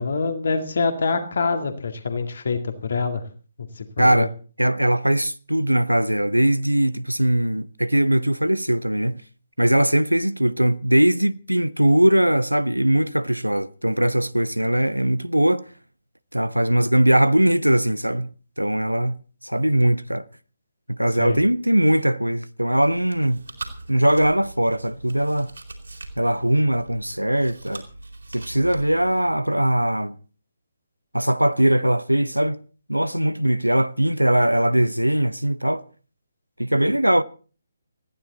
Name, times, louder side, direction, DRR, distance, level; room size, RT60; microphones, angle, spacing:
voice 1, 0.0-3.2 3.8-4.3 21.2-21.4, left 4 dB, 55° left, 2.2 m, -25 dB
voice 2, 4.0-4.3 4.6-9.2 9.6-15.6 16.3-18.3 18.6-20.2 20.9-23.4 23.9-25.5 26.2-27.8 28.3-30.1 31.1-32.6 32.9-35.8 36.6-37.2, right 1 dB, 85° right, 0.7 m, -20 dB
Chewing mastication, 22.7-29.3, right 2 dB, 70° right, 4.2 m, -41 dB
20.0 x 15.0 x 4.2 m
figure-of-eight pair, 140°, 0 cm